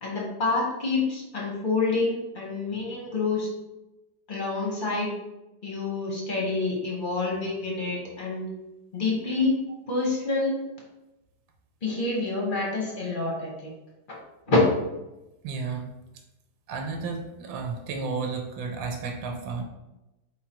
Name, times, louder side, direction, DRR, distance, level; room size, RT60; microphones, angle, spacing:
voice 1, 0.0-3.5 4.3-5.1 5.6-8.5 8.9-9.6 9.9-10.6 11.8-13.7 14.5-14.6, left 3 dB, 40° left, -3 dB, 0.8 m, -27 dB
voice 2, 15.4-15.9 16.7-19.6, right 4 dB, 75° right, 2 dB, 1.4 m, -32 dB
4.6 x 3.8 x 2.9 m, 0.97 s
omnidirectional pair, 2.2 m